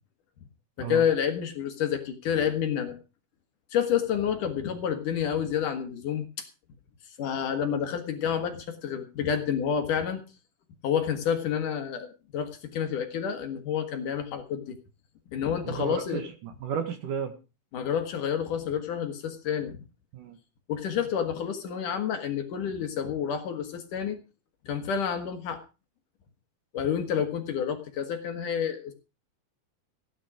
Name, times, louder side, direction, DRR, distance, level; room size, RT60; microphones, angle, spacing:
voice 1, 0.8-3.0 3.7-6.5 7.0-10.2 10.8-14.8 15.3-16.2 17.7-19.8 20.7-24.2 24.6-25.6 26.7-28.9, left 8 dB, 60° left, 6 dB, 2.7 m, -29 dB
voice 2, 15.6-17.3 20.1-20.4, right 7 dB, 60° right, 8 dB, 2.9 m, -33 dB
15.5 x 9.9 x 5.0 m, 0.32 s
omnidirectional pair, 4.6 m